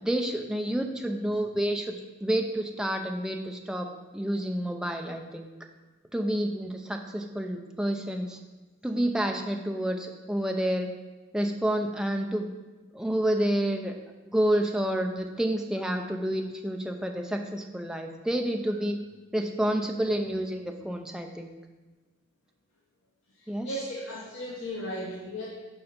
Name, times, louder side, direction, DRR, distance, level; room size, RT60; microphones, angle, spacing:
voice 1, 0.0-1.9 2.2-5.5 6.1-8.4 8.8-10.9 11.3-12.5 12.9-13.9 14.3-19.0 19.3-21.5 23.5-23.7, right 1 dB, 5° right, 3 dB, 0.5 m, -29 dB
voice 2, 23.4-25.5, equal, 75° left, -3 dB, 1.0 m, -36 dB
7.0 x 5.3 x 5.2 m, 1.2 s
head